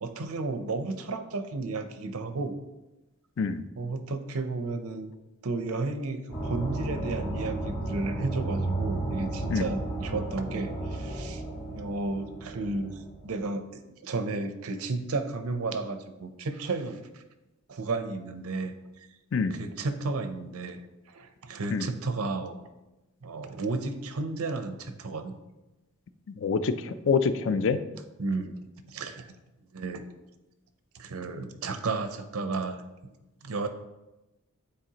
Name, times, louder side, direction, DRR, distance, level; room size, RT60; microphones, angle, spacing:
voice 1, 0.0-2.5 3.8-5.1 5.4-11.4 11.7-17.2 17.7-18.8 19.5-20.8 21.1-22.6 23.2-25.3 28.2-29.3 29.7-30.1 30.9-32.8 33.4-33.7, right 3 dB, 75° right, 9 dB, 0.6 m, -33 dB
sound 1, 6.3-13.5, right 2 dB, 35° left, 1.2 m, -33 dB
voice 2, 26.4-27.8, left 5 dB, 55° left, 11 dB, 0.4 m, -26 dB
9.0 x 4.2 x 2.9 m, 1.0 s
head